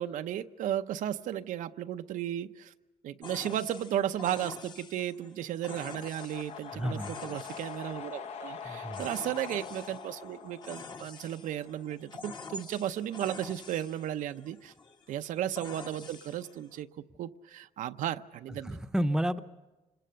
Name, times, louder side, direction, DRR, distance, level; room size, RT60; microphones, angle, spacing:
voice 1, 0.0-2.7 3.0-14.7 15.1-16.9 17.2-18.8, right 11 dB, 85° right, 9 dB, 0.7 m, -34 dB
sound 1, 3.2-16.8, left 4 dB, 35° left, 1.2 m, -47 dB
sound 2, 5.6-11.7, left 6 dB, 55° left, 0.8 m, -44 dB
voice 2, 6.7-7.2 8.6-9.0 18.6-19.4, equal, 5° right, 8 dB, 0.8 m, -31 dB
26.5 x 21.5 x 6.8 m, 1.1 s
cardioid pair, 130°, 13 cm